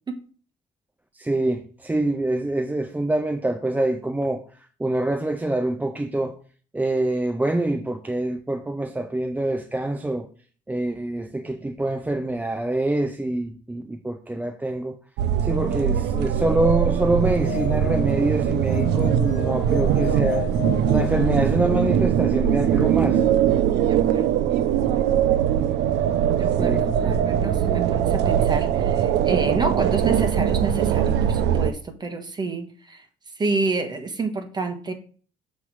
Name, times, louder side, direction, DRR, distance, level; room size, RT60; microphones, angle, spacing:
voice 1, 1.1-4.5 4.8-6.4 6.7-10.3 10.7-15.0 15.4-20.5 20.9-23.2 26.6-26.9, right 2 dB, 10° right, 0.5 m, -25 dB
sound 1, 15.2-31.7, right 9 dB, 85° right, 0.5 m, -21 dB
sound 2, 17.2-22.0, left 18 dB, 45° left, 0.7 m, -35 dB
voice 2, 23.9-24.4 26.4-33.1 33.3-34.9, right 3 dB, 25° right, 1.3 m, -28 dB
6.9 x 3.3 x 6.1 m
cardioid pair, 110°, 17 cm